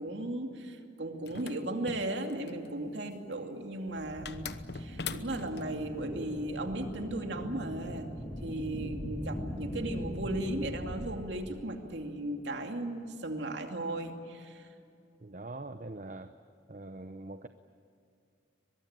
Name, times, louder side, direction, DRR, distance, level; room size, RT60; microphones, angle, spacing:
voice 1, 0.0-4.5 4.7-8.1 8.4-14.7, right 1 dB, 80° right, 4 dB, 2.6 m, -36 dB
sound 1, 1.2-2.7 4.3-5.7, left 5 dB, 65° left, 1.0 m, -41 dB
sound 2, 3.9-11.2, equal, 15° left, 3.7 m, -40 dB
voice 2, 15.2-16.3 16.7-17.5, right 2 dB, 45° right, 9 dB, 0.8 m, -43 dB
23.0 x 22.0 x 8.9 m, 2.5 s
head